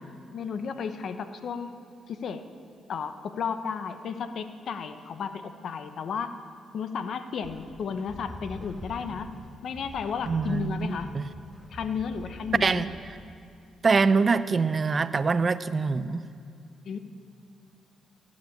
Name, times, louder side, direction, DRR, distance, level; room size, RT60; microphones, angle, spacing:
voice 1, 0.3-1.7 2.1-2.4 2.9-6.4 6.7-9.3 9.6-11.1 11.7-12.8 16.8-17.0, left 6 dB, 65° left, 9 dB, 1.0 m, -33 dB
sound 1, 7.4-13.2, left 1 dB, 15° left, 2.4 m, -45 dB
voice 2, 10.3-11.3 12.6-12.9 13.8-16.2, right 4 dB, 40° right, 14 dB, 0.6 m, -24 dB
17.0 x 8.5 x 8.5 m, 2.5 s
cardioid pair, 70°, 0 cm